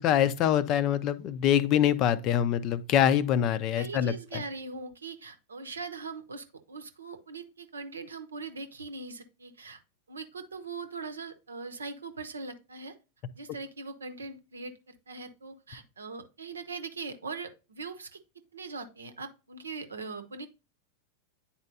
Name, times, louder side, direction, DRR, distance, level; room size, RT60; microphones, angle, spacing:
voice 1, 0.0-4.4, left 10 dB, 40° left, 0.5 m, -25 dB
voice 2, 3.8-9.8 10.1-13.0 13.3-18.2 18.5-20.5, right 4 dB, 75° right, 0.8 m, -41 dB
9.5 x 4.2 x 2.7 m
figure-of-eight pair, 90°, 0 cm